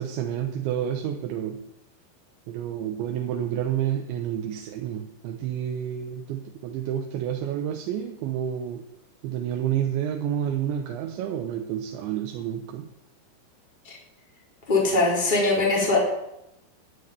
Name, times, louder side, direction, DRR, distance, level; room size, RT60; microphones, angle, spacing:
voice 1, 0.0-1.6 2.5-8.8 9.2-12.9, right 10 dB, 85° right, 4 dB, 3.4 m, -29 dB
voice 2, 14.7-16.0, left 3 dB, 10° left, -3 dB, 4.1 m, -21 dB
12.5 x 9.0 x 9.6 m, 0.86 s
omnidirectional pair, 5.1 m